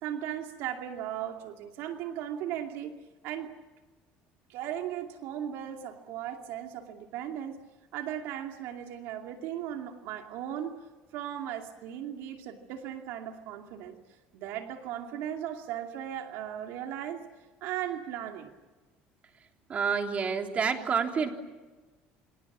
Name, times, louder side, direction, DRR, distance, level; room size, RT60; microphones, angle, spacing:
voice 1, 0.0-3.0 3.2-3.5 4.5-7.6 7.9-10.7 11.1-14.0 14.3-17.2 17.6-18.5, right 10 dB, 75° right, 4 dB, 2.6 m, -37 dB
voice 2, 19.7-21.3, right 6 dB, 35° right, 4 dB, 3.4 m, -28 dB
29.0 x 26.5 x 7.4 m, 1.2 s
cardioid pair, 125°, 4 cm